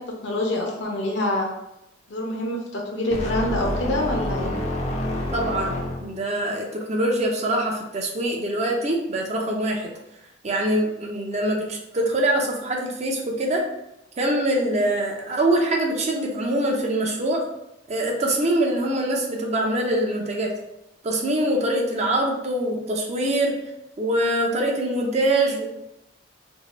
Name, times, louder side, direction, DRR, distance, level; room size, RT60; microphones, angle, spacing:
voice 1, 0.0-1.5 2.1-4.5, left 1 dB, 65° left, -1 dB, 0.7 m, -26 dB
sound 1, 3.1-6.3, left 1 dB, 35° left, 0.5 m, -28 dB
voice 2, 5.3-9.9 10.4-13.6 14.2-17.4 17.9-20.5 21.0-23.6 24.0-25.6, right 1 dB, 35° right, -1 dB, 0.5 m, -24 dB
2.7 x 2.2 x 4.1 m, 0.88 s
head